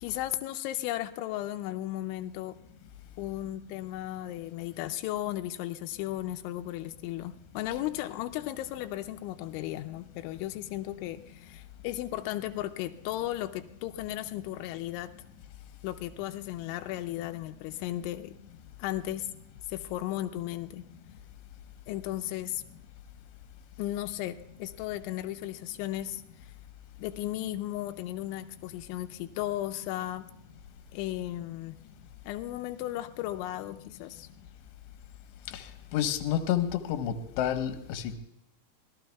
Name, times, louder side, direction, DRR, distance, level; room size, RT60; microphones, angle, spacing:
voice 1, 0.0-2.6 3.2-15.1 15.8-18.4 18.8-19.3 19.7-20.8 21.9-22.6 23.8-26.2 27.0-30.3 30.9-31.7 32.3-34.3, left 14 dB, 90° left, 7 dB, 3.1 m, -35 dB
voice 2, 35.4-38.1, left 10 dB, 75° left, 7 dB, 3.1 m, -30 dB
26.0 x 18.0 x 2.3 m, 0.86 s
omnidirectional pair, 5.3 m